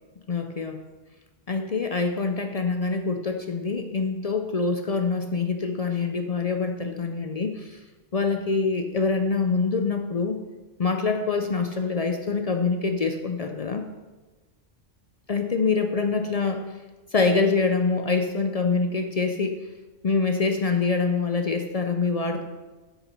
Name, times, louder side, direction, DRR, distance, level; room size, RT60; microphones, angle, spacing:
voice 1, 0.3-0.8 1.5-7.8 8.1-10.4 10.8-13.9 15.3-16.8 17.1-19.6 20.0-22.4, left 4 dB, 55° left, 6 dB, 0.4 m, -25 dB
8.6 x 6.1 x 5.3 m, 1.3 s
omnidirectional pair, 1.3 m